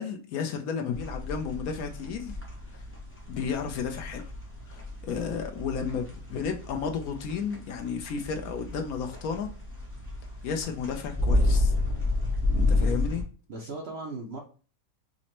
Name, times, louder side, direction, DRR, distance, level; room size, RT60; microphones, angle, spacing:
voice 1, 0.0-2.4 2.7-2.8 3.3-4.2 4.7-9.5 10.4-11.7 12.6-13.2, left 6 dB, 70° left, 1.0 m, -33 dB
sound 1, 0.9-13.2, left 2 dB, 10° left, 0.8 m, -30 dB
voice 2, 12.5-12.9 13.5-14.4, right 2 dB, 60° right, 0.6 m, -38 dB
5.0 x 2.1 x 2.9 m
omnidirectional pair, 1.7 m